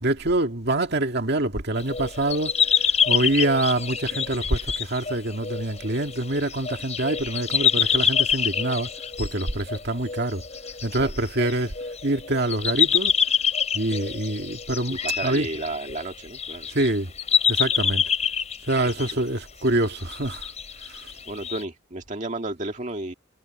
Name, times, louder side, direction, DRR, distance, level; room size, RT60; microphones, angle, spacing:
voice 1, 0.0-8.9 9.2-10.4 10.8-11.7 12.0-13.1 13.7-15.5 16.7-17.1 17.5-18.0 18.7-20.5 20.9-21.1, right 2 dB, 60° right, 2.1 m, -25 dB
sound 1, 1.8-16.9 17.2-19.1 19.7-21.6, left 8 dB, 35° left, 5.9 m, -26 dB
voice 2, 14.9-16.7 21.3-23.1, right 2 dB, 40° right, 1.9 m, -32 dB
head